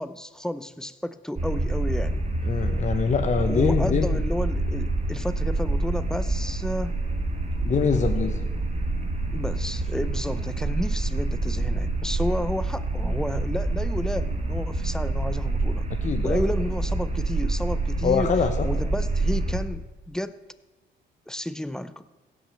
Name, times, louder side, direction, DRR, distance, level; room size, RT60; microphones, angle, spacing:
voice 1, 0.0-2.2 3.5-6.9 9.3-15.9 16.2-18.3 18.6-20.4 21.3-22.0, left 1 dB, 5° left, 13 dB, 0.6 m, -31 dB
sound 1, 1.4-19.6, right 2 dB, 35° right, 2.0 m, -27 dB
voice 2, 2.4-4.2 7.6-8.4 16.0-16.4 18.0-18.7, left 5 dB, 35° left, 6 dB, 1.0 m, -24 dB
16.0 x 6.2 x 6.9 m, 1.2 s
cardioid pair, 90°, 20 cm